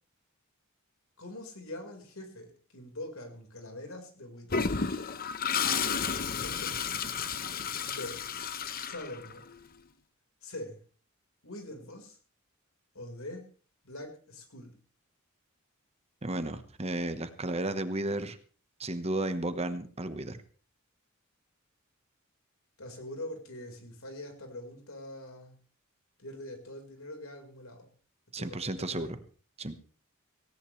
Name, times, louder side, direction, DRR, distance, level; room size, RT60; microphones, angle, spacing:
voice 1, 1.2-4.6 5.6-5.9 6.4-7.1 7.9-8.2 8.9-9.4 10.4-10.8 11.4-12.2 12.9-13.5 13.8-14.8 22.8-25.6 26.2-27.9 28.4-29.1, left 1 dB, 80° left, 3 dB, 4.6 m, -43 dB
Toilet flush, 4.5-9.6, left 6 dB, 45° left, 1.0 m, -32 dB
voice 2, 16.2-18.4 18.8-20.4 28.3-29.2 29.6-29.8, right 1 dB, 30° right, 10 dB, 1.2 m, -33 dB
18.0 x 17.5 x 3.3 m, 0.40 s
head